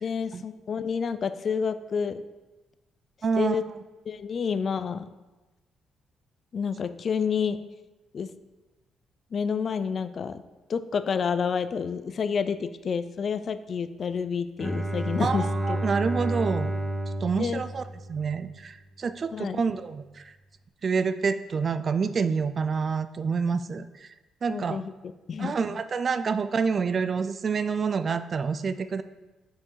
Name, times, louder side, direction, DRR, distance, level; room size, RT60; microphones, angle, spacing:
voice 1, 0.0-2.2 3.4-3.6 4.1-5.1 6.5-7.6 8.1-8.3 9.3-10.4 10.7-15.8 17.3-17.6 19.3-19.6 24.5-24.9 25.3-25.8, left 6 dB, 50° left, 12 dB, 0.4 m, -29 dB
voice 2, 3.2-3.6 15.2-16.8 17.2-17.8 18.1-20.3 20.8-24.1 24.4-24.8 25.4-29.0, right 5 dB, 45° right, 12 dB, 0.4 m, -27 dB
Bowed string instrument, 14.6-18.5, right 1 dB, 15° right, 0.8 m, -30 dB
6.1 x 4.7 x 4.6 m, 1.1 s
cardioid pair, 90°, 0 cm